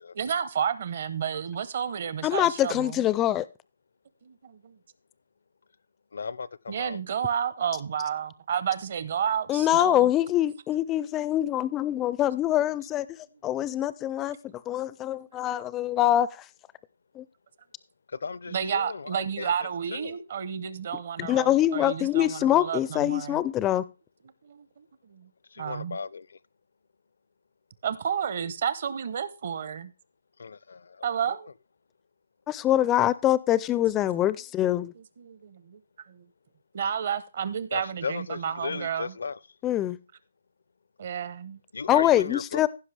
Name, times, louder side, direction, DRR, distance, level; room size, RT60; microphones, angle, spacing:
voice 1, 0.1-3.0 4.2-4.8 6.7-10.1 18.5-23.4 24.4-25.3 25.6-26.0 27.8-29.9 31.0-31.5 35.2-35.8 36.1-36.3 36.7-39.1 41.0-41.6, right 8 dB, 50° right, 0.8 m, -31 dB
voice 2, 2.2-3.5 9.5-16.5 17.1-17.3 21.2-23.8 32.5-34.9 39.6-40.0 41.9-42.7, left 13 dB, 15° left, 0.4 m, -24 dB
voice 3, 6.1-7.0 18.1-19.5 19.9-20.2 25.5-26.4 30.4-31.4 37.7-39.4 41.7-42.7, left 5 dB, 70° left, 0.5 m, -36 dB
15.5 x 5.7 x 3.3 m
hypercardioid pair, 160°, 0 cm